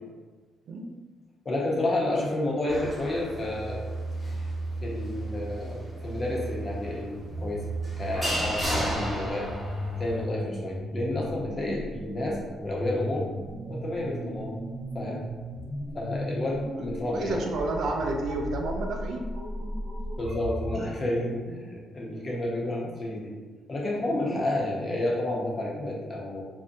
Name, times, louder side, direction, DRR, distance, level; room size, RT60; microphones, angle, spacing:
voice 1, 1.4-3.8 4.8-7.7 8.0-9.5 9.9-13.3 13.7-14.6 14.9-15.3 15.9-17.4 20.2-23.4 23.7-26.4, left 1 dB, 40° left, -2 dB, 0.6 m, -30 dB
sound 1, 2.7-10.2, right 1 dB, 15° right, 1.0 m, -33 dB
sound 2, 7.1-20.9, equal, 40° right, 0.9 m, -36 dB
voice 2, 17.1-19.2 21.5-21.7 22.1-22.3 24.2-24.4, right 2 dB, 65° right, 2 dB, 0.4 m, -31 dB
2.6 x 2.1 x 2.6 m, 1.4 s
cardioid pair, 90°, 0 cm